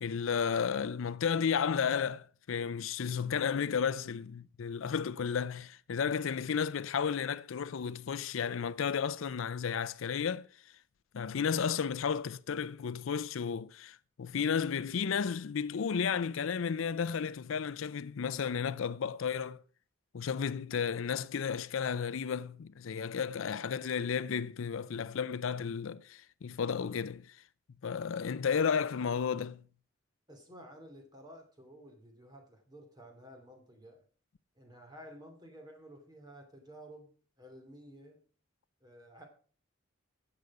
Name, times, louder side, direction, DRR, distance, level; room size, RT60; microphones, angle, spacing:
voice 1, 0.0-10.5 11.1-19.6 20.1-27.4 27.8-29.6, left 6 dB, 75° left, 0.4 m, -33 dB
voice 2, 30.3-34.0 34.6-37.1 37.4-38.2 38.8-39.3, equal, 20° right, 2.6 m, -52 dB
12.0 x 8.1 x 4.8 m
head